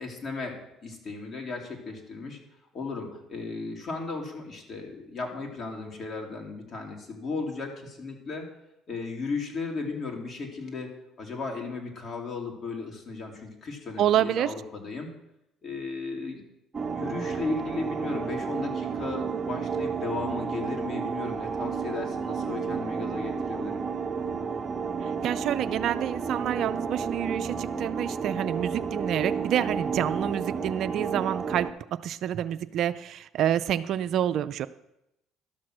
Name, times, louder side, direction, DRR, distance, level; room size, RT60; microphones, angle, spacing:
voice 1, 0.0-2.4 2.7-8.5 8.9-10.9 11.2-15.1 15.6-16.4 16.9-23.8, left 4 dB, 50° left, 1 dB, 2.7 m, -35 dB
voice 2, 14.0-14.5 25.0-34.7, right 10 dB, 60° right, 13 dB, 0.4 m, -28 dB
sound 1, 16.7-31.7, right 5 dB, 30° right, 1.0 m, -31 dB
12.5 x 6.3 x 6.0 m, 0.85 s
supercardioid pair, 70°, 0 cm